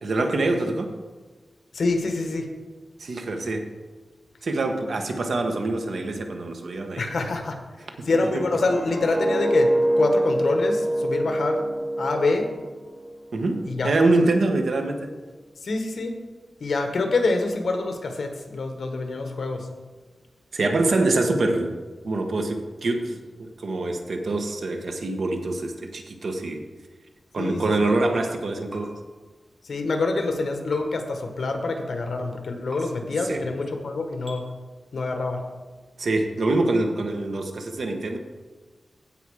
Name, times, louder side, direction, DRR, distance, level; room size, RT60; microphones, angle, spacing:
voice 1, 0.0-0.9 3.0-3.7 4.4-7.0 8.0-8.1 8.3-8.4 13.3-15.1 20.5-21.8 22.0-26.6 27.3-29.0 33.3-33.4 36.0-38.2, right 2 dB, 65° right, 4 dB, 1.3 m, -25 dB
voice 2, 1.7-2.5 7.0-7.6 8.1-11.6 12.0-12.5 13.7-13.9 15.6-16.2 16.6-19.7 27.4-27.6 29.6-34.5 34.9-35.4, left 3 dB, 70° left, 5 dB, 1.4 m, -26 dB
sound 1, 8.2-13.2 13.6-13.9, right 1 dB, 5° left, 2.3 m, -25 dB
sound 2, 28.7-28.8 30.7-30.8 32.7-32.8 34.2-34.4, right 1 dB, 15° right, 2.6 m, -40 dB
16.0 x 5.5 x 4.9 m, 1.3 s
wide cardioid pair, 150°, 0 cm